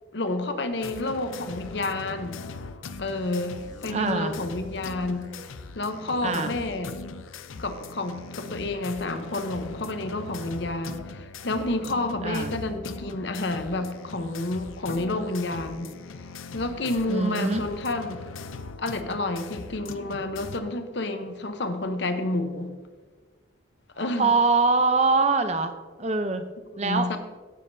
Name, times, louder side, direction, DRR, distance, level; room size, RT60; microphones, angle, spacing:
voice 1, 0.1-2.4 3.0-5.3 5.7-6.9 7.6-15.9 16.5-18.2 18.8-22.7 24.0-24.3 26.8-27.2, left 2 dB, 60° left, 8 dB, 0.9 m, -30 dB
sound 1, 0.7-20.6, left 4 dB, 85° left, 0.5 m, -40 dB
sound 2, 2.9-5.5, right 1 dB, 40° left, 2.0 m, -52 dB
voice 2, 3.9-4.3 6.2-6.5 12.2-12.5 17.1-17.6 24.0-25.7 26.0-26.5 26.8-27.1, right 3 dB, 35° right, 9 dB, 0.6 m, -23 dB
16.5 x 7.3 x 2.7 m, 1.4 s
head